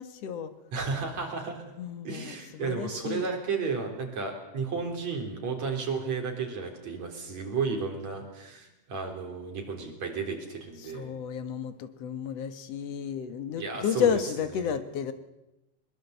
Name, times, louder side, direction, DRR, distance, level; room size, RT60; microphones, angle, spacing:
voice 1, 0.0-0.5 1.8-3.3 10.8-15.1, left 8 dB, 60° left, 11 dB, 2.3 m, -32 dB
voice 2, 0.7-1.6 2.1-11.1 13.6-14.2, right 5 dB, 60° right, 2 dB, 5.2 m, -33 dB
22.0 x 21.5 x 8.2 m, 0.94 s
omnidirectional pair, 3.4 m